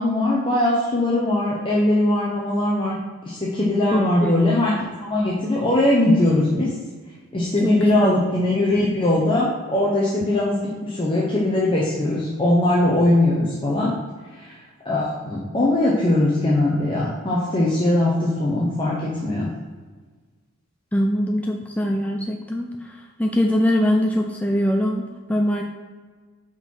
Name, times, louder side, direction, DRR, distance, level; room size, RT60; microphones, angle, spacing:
voice 1, 0.0-3.0 3.2-4.7 5.0-6.7 7.3-13.9 14.3-14.6 14.8-19.5, left 1 dB, 25° left, -5 dB, 0.9 m, -20 dB
voice 2, 3.9-4.3 7.6-8.1 20.9-25.6, equal, 5° left, 1 dB, 0.4 m, -22 dB
5.6 x 4.9 x 4.6 m, 1.4 s
head